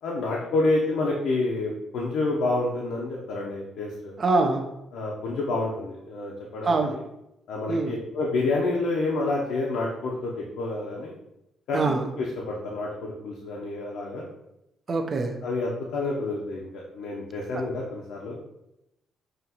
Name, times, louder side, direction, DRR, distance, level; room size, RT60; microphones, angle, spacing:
voice 1, 0.0-4.1 4.9-7.0 7.5-11.1 11.7-14.3 15.4-18.4, left 2 dB, 85° left, -3 dB, 0.7 m, -28 dB
voice 2, 4.2-4.6 6.6-7.0 7.7-8.0 11.7-12.1 14.9-15.3, right 3 dB, 40° right, 4 dB, 0.6 m, -24 dB
5.6 x 2.5 x 2.9 m, 0.87 s
cardioid pair, 90°, 0 cm